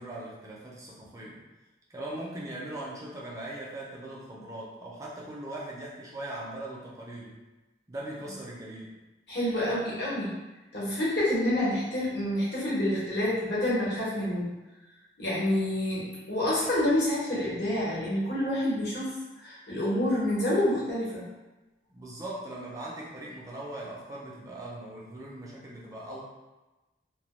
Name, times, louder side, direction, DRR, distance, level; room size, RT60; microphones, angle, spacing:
voice 1, 0.0-1.4 1.9-7.4 7.9-9.0 21.9-26.2, right 1 dB, 20° right, -4 dB, 0.3 m, -40 dB
voice 2, 9.3-10.3 10.7-14.5 15.2-19.1 19.4-21.2, left 1 dB, 75° left, -8 dB, 1.0 m, -28 dB
2.1 x 2.1 x 3.0 m, 1.1 s
head